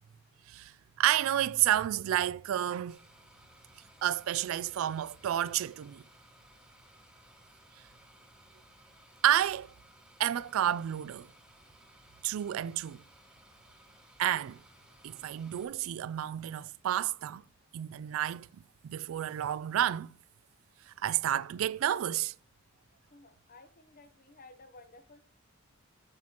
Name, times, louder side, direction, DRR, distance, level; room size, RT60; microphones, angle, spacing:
voice 1, 1.0-3.0 4.0-6.0 9.2-9.7 10.2-11.3 12.2-13.0 14.2-14.6 15.0-17.4 17.7-18.5 18.8-20.1 21.0-22.3, right 11 dB, 70° right, 0.3 m, -30 dB
sound 1, 2.9-15.6, right 1 dB, 5° right, 1.1 m, -59 dB
voice 2, 23.1-25.2, left 2 dB, 45° left, 1.0 m, -55 dB
7.6 x 7.4 x 2.9 m
head